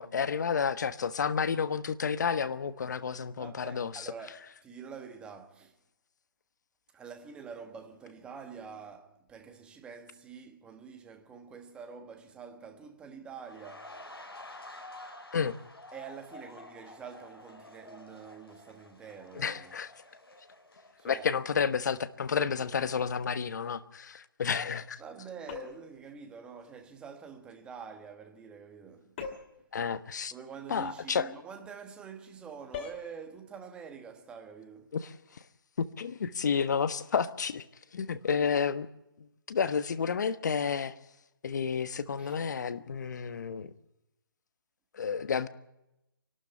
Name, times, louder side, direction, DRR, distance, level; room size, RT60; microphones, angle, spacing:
voice 1, 0.0-4.1 15.3-15.6 19.3-19.9 21.0-25.0 29.7-30.3 30.7-31.3 34.9-35.4 35.8-37.6 37.9-38.9 39.5-41.0 41.4-43.7 44.9-45.5, left 6 dB, 50° left, 1.3 m, -31 dB
voice 2, 3.4-5.8 6.9-13.9 15.9-19.8 21.0-21.3 25.0-29.2 30.3-34.9 42.2-42.4, right 6 dB, 10° right, 1.3 m, -46 dB
sound 1, 13.4-22.2 22.6-22.8, left 2 dB, 90° left, 4.7 m, -50 dB
sound 2, 25.5-26.0 29.2-29.6 32.7-33.1, left 6 dB, 30° left, 2.4 m, -40 dB
25.5 x 12.5 x 8.6 m
figure-of-eight pair, 150°, 12 cm